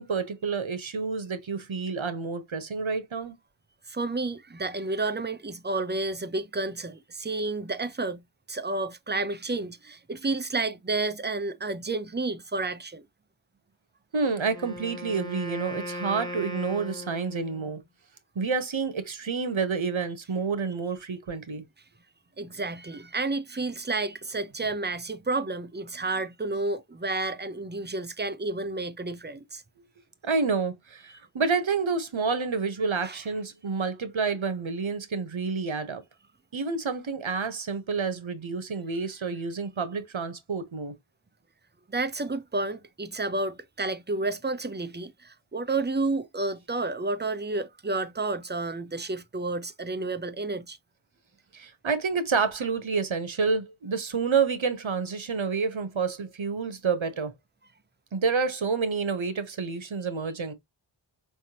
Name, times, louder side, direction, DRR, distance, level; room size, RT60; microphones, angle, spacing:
voice 1, 0.0-3.4 14.1-17.8 18.3-21.6 30.2-36.0 36.5-40.9 51.5-57.3 58.1-60.5, right 5 dB, 75° right, 1.1 m, -29 dB
voice 2, 3.9-8.2 8.5-13.0 22.4-29.6 33.0-33.2 41.9-50.8, right 3 dB, 20° right, 0.7 m, -31 dB
Wind instrument woodwind instrument, 14.5-17.8, left 1 dB, 10° left, 1.6 m, -38 dB
5.3 x 3.5 x 2.9 m
wide cardioid pair, 50°, 47 cm